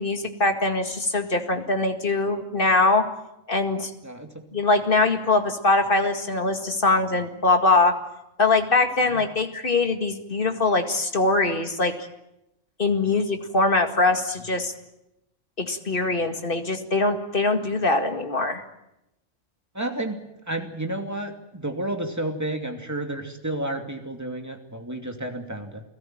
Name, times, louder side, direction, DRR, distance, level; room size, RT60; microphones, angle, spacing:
voice 1, 0.0-3.0 3.5-3.9 4.5-7.9 8.4-11.9 12.8-14.7 15.6-18.6, left 3 dB, 45° left, 6 dB, 2.2 m, -22 dB
voice 2, 19.7-20.2 20.5-25.8, right 1 dB, 15° right, 4 dB, 2.6 m, -31 dB
29.5 x 17.0 x 9.1 m, 0.90 s
omnidirectional pair, 1.3 m